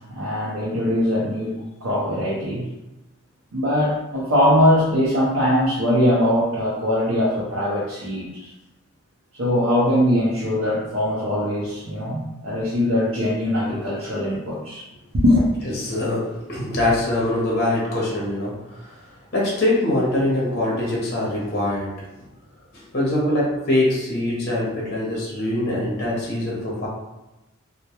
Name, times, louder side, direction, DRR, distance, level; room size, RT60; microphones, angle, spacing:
voice 1, 0.0-2.7 3.5-8.5 9.4-14.8 15.1-15.5, left 1 dB, 70° right, -6 dB, 0.5 m, -21 dB
voice 2, 15.8-19.0 19.3-22.1 22.7-26.9, left 1 dB, 50° left, -4 dB, 0.8 m, -23 dB
2.2 x 2.1 x 2.8 m, 1.0 s
head